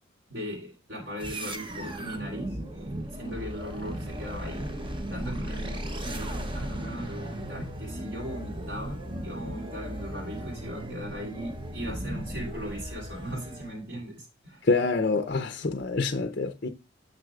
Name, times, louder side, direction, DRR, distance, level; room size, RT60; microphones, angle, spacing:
voice 1, 0.3-2.6 3.1-4.8 5.1-14.7, equal, 60° right, 3.3 m, -38 dB
sound 1, 1.2-13.8, right 1 dB, 25° right, 0.9 m, -36 dB
voice 2, 14.7-16.7, left 3 dB, 50° left, 0.6 m, -26 dB
9.3 x 7.0 x 2.4 m
head